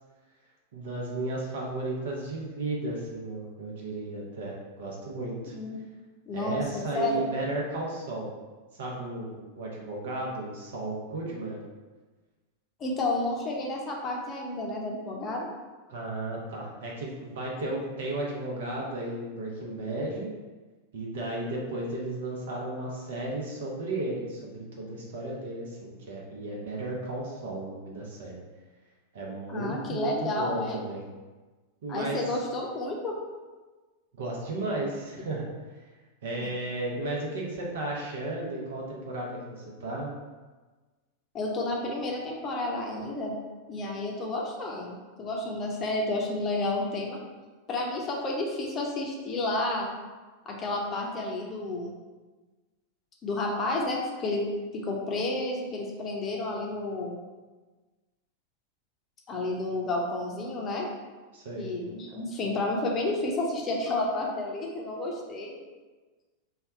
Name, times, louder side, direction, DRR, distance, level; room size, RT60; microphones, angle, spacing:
voice 1, 0.7-5.5 6.3-8.3 8.7-11.6 15.9-20.3 20.9-28.4 29.1-31.1 31.8-32.3 34.1-35.5 36.2-40.1 61.3-61.7, right 2 dB, 60° right, -2 dB, 0.9 m, -34 dB
voice 2, 6.3-7.2 12.8-15.5 29.5-30.8 31.9-33.2 41.3-43.3 43.7-47.2 47.7-49.9 50.5-51.9 53.2-54.4 54.7-57.2 59.3-60.9 61.5-65.5, left 2 dB, 30° left, -1 dB, 0.7 m, -31 dB
3.4 x 2.4 x 4.2 m, 1.3 s
figure-of-eight pair, 90°, 0 cm